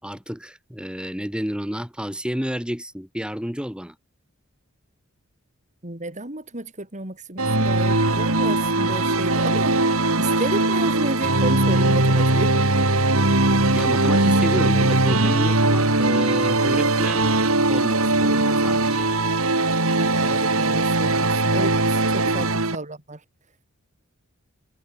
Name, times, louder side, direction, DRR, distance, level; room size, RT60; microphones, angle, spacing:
voice 1, 0.0-3.9 13.7-17.4 17.7-19.1 22.2-22.5, equal, 5° right, 5.9 m, -30 dB
voice 2, 5.8-9.8 10.2-12.5 20.0-23.2, right 2 dB, 35° right, 4.6 m, -32 dB
sound 1, 7.4-22.8, right 2 dB, 75° right, 5.1 m, -20 dB
head